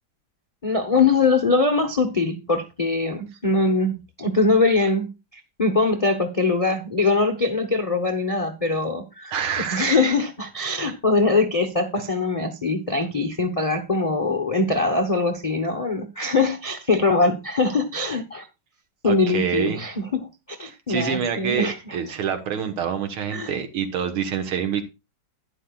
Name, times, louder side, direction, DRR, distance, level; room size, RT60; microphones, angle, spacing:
voice 1, 0.6-18.5 19.0-22.0 23.3-23.5, left 3 dB, 40° left, 6 dB, 0.5 m, -22 dB
voice 2, 9.3-9.8 10.7-10.9 19.0-19.8 20.7-24.8, right 7 dB, 85° right, 8 dB, 2.2 m, -27 dB
12.0 x 10.0 x 2.3 m, 0.26 s
omnidirectional pair, 2.3 m